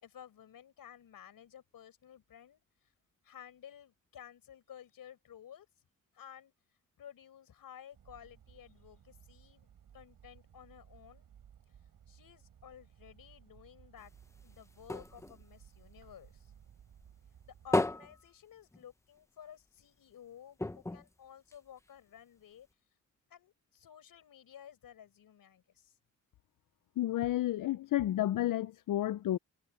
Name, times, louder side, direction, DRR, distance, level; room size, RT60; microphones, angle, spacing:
voice 1, 0.0-2.6 3.2-5.7 6.1-6.5 7.0-9.7 9.9-11.3 12.1-14.1 14.4-16.5 17.5-22.7 23.3-26.0, left 9 dB, 85° left, 5.2 m, -54 dB
sound 1, 7.9-17.8, right 9 dB, 80° right, 6.1 m, -60 dB
sound 2, 14.0-16.6 17.0-19.3 19.6-19.7 20.0-20.1 20.6-22.1 22.7-22.8, left 2 dB, 10° left, 0.6 m, -36 dB
voice 2, 27.0-29.4, left 13 dB, 70° left, 0.5 m, -31 dB
wide cardioid pair, 170°, 33 cm